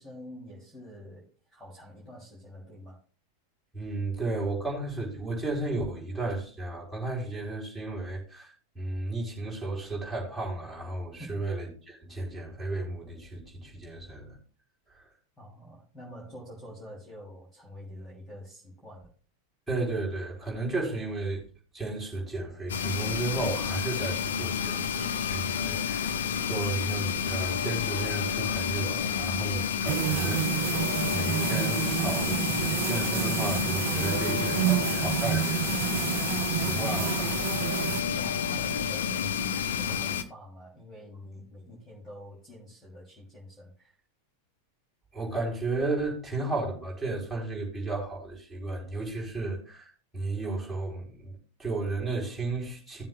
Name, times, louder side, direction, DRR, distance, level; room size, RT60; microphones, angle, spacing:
voice 1, 0.0-3.0 11.2-11.5 15.4-19.1 38.1-44.0, equal, 15° left, 3.1 m, -46 dB
voice 2, 3.7-14.4 14.9-15.1 19.7-21.4 21.7-30.8 31.1-35.8 36.2-37.3 45.1-53.1, right 2 dB, 5° right, 4.4 m, -34 dB
sound 1, 22.7-40.2, left 7 dB, 65° left, 0.8 m, -30 dB
sound 2, 29.8-38.0, right 15 dB, 40° right, 0.4 m, -30 dB
17.5 x 7.3 x 2.3 m
figure-of-eight pair, 90°, 0 cm